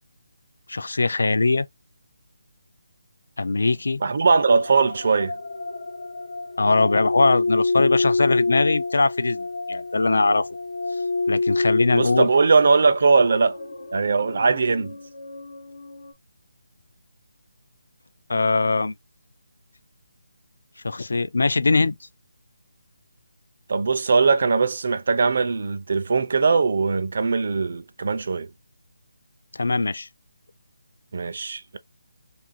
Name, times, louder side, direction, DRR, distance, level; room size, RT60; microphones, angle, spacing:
voice 1, 0.7-1.7 3.4-4.0 6.6-10.5 11.3-12.3 18.3-18.9 20.8-22.0 29.5-30.1, left 3 dB, 75° left, 0.4 m, -21 dB
voice 2, 4.0-5.3 11.9-13.5 13.9-14.9 23.7-28.5 31.1-31.8, right 4 dB, 45° right, 0.4 m, -20 dB
sound 1, 4.3-16.1, left 3 dB, 45° left, 1.0 m, -28 dB
2.7 x 2.5 x 2.6 m
hypercardioid pair, 175°, 0 cm